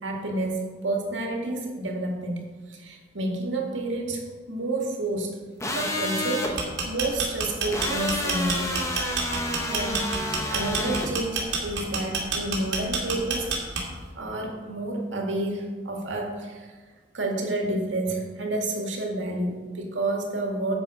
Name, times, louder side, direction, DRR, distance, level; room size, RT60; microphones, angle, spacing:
voice 1, 0.0-5.3 5.7-8.8 9.7-13.5 13.7-13.8 14.2-16.7 17.1-20.7, right 2 dB, 85° right, 1 dB, 1.9 m, -30 dB
sound 1, 5.6-6.5 7.7-11.1, left 1 dB, 15° left, 1.2 m, -29 dB
sound 2, 6.6-14.1, right 4 dB, 65° right, 2.3 m, -28 dB
10.5 x 7.5 x 4.9 m, 1.4 s
head